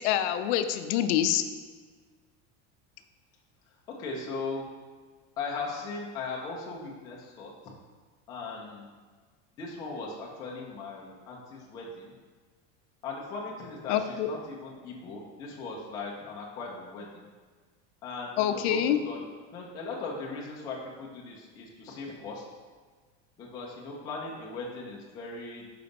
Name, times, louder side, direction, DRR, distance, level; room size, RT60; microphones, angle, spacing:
voice 1, 0.0-1.5 13.9-14.3 18.4-19.0, left 10 dB, 70° left, 10 dB, 0.5 m, -26 dB
voice 2, 3.9-4.6 5.4-7.5 8.3-8.9 9.6-12.2 13.0-17.3 18.0-19.2 19.5-22.4 23.4-25.6, left 3 dB, 10° left, -3 dB, 0.3 m, -38 dB
4.8 x 3.8 x 5.1 m, 1.5 s
cardioid pair, 175°, 35 cm